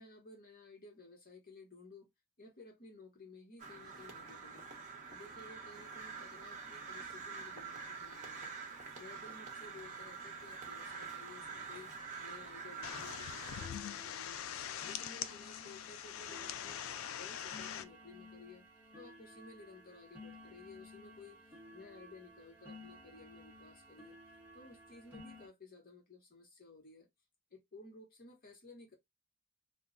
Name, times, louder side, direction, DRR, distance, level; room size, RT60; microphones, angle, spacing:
voice 1, 0.0-2.1 2.4-4.7 5.1-8.5 8.9-11.9 12.2-14.4 14.8-16.8 17.2-18.6 18.9-21.4 21.7-24.2 24.5-27.1 27.5-28.9, left 3 dB, 45° left, 0.9 m, -55 dB
Crow, 3.6-13.7, right 5 dB, 40° right, 0.8 m, -46 dB
sound 1, 5.8-5.9 6.1-6.2 6.4-6.6 6.9-7.3 8.0-8.1 8.6-8.7 9.1-9.2 9.6-9.7 10.2-10.3 10.7-10.9 11.3-11.4 11.7-25.5, left 1 dB, 10° right, 1.0 m, -56 dB
sound 2, 12.8-17.8, left 9 dB, 70° left, 0.3 m, -43 dB
2.2 x 2.0 x 3.6 m
head